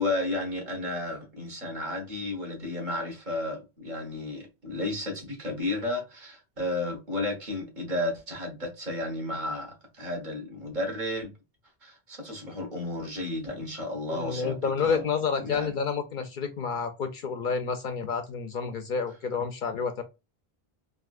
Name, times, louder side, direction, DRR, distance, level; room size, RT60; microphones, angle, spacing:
voice 1, 0.0-11.3 11.8-15.0 15.4-15.7, left 2 dB, 50° right, 1.3 m, -33 dB
voice 2, 14.1-20.0, left 5 dB, 60° left, 0.6 m, -29 dB
3.5 x 2.6 x 2.4 m
omnidirectional pair, 1.0 m